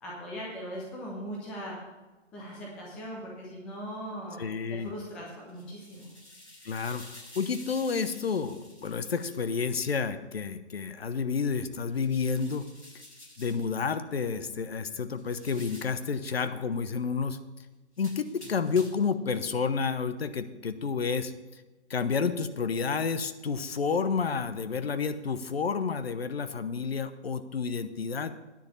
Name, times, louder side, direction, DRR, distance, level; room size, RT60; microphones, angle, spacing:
voice 1, 0.0-1.7 2.3-4.4 4.7-6.1, equal, 5° left, -4 dB, 0.5 m, -39 dB
voice 2, 4.4-4.9 6.6-12.6 13.4-17.4 18.0-21.6 21.9-28.3, left 5 dB, 60° left, 11 dB, 0.9 m, -30 dB
sound 1, 5.4-9.5 11.9-13.7 15.2-16.0 18.0-19.1, left 1 dB, 85° left, 4.0 m, -51 dB
9.9 x 6.7 x 7.2 m, 1.1 s
figure-of-eight pair, 135°, 35 cm